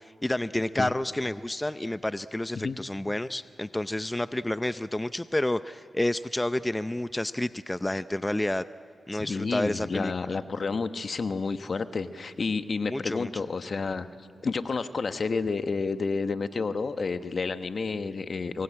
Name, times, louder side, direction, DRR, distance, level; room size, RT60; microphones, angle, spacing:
voice 1, 0.0-8.6 9.1-10.1 12.9-13.3, left 1 dB, 15° left, 13 dB, 0.6 m, -30 dB
voice 2, 9.1-14.1 14.4-18.6, left 4 dB, 55° left, 10 dB, 1.2 m, -30 dB
26.0 x 22.5 x 8.8 m, 2.4 s
cardioid pair, 50°, 0 cm